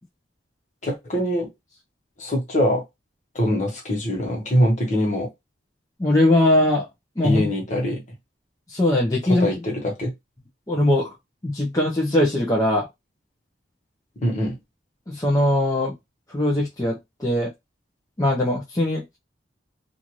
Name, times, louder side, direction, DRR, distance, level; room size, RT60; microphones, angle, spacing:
voice 1, 0.8-1.5 2.2-2.8 3.3-5.3 7.2-8.0 9.2-10.1 14.2-14.5, equal, 40° left, 1.2 m, -23 dB
voice 2, 6.0-6.9 7.2-7.5 8.7-9.5 10.7-11.1 11.4-12.9 15.1-15.9 16.3-17.5 18.2-19.0, left 1 dB, 20° left, 0.7 m, -20 dB
2.6 x 2.5 x 3.0 m
head